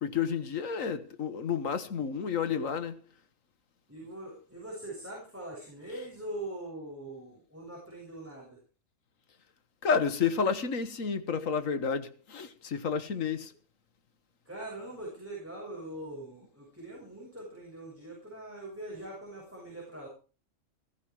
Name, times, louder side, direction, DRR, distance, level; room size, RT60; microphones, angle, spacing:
voice 1, 0.0-3.0 9.8-13.5, left 6 dB, 75° left, 1.7 m, -30 dB
voice 2, 3.9-8.6 14.5-20.1, right 1 dB, 10° right, 7.0 m, -42 dB
16.5 x 14.5 x 4.7 m
omnidirectional pair, 1.4 m